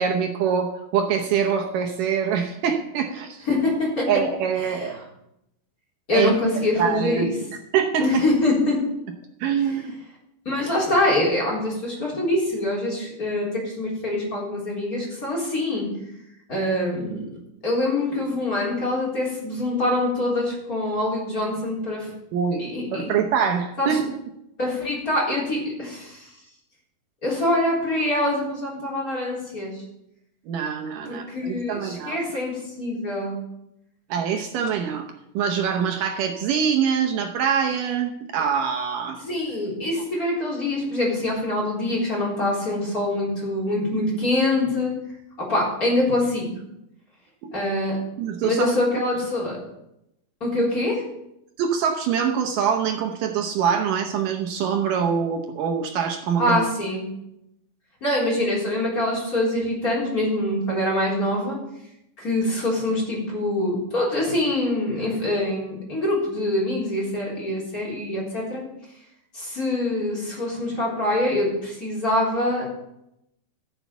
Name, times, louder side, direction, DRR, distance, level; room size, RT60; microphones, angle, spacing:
voice 1, 0.0-3.5 4.1-5.0 6.1-6.3 6.8-7.3 7.7-8.2 9.4-9.9 22.3-22.6 22.9-24.2 30.5-32.2 34.1-35.1 35.3-39.2 47.4-47.5 48.2-48.8 51.6-56.6, right 7 dB, 75° right, 4 dB, 2.3 m, -24 dB
voice 2, 3.5-4.1 4.6-4.9 6.1-7.3 8.0-8.8 10.5-15.9 16.5-17.2 17.6-22.1 22.6-23.2 23.8-24.0 24.6-26.3 27.2-29.8 31.0-33.4 39.1-44.9 45.4-46.5 47.5-48.0 48.4-49.6 50.4-51.0 56.4-57.1 58.0-61.6 62.2-68.6 69.3-72.7, left 1 dB, 25° left, -3 dB, 4.1 m, -24 dB
14.5 x 7.2 x 7.0 m, 0.84 s
omnidirectional pair, 4.1 m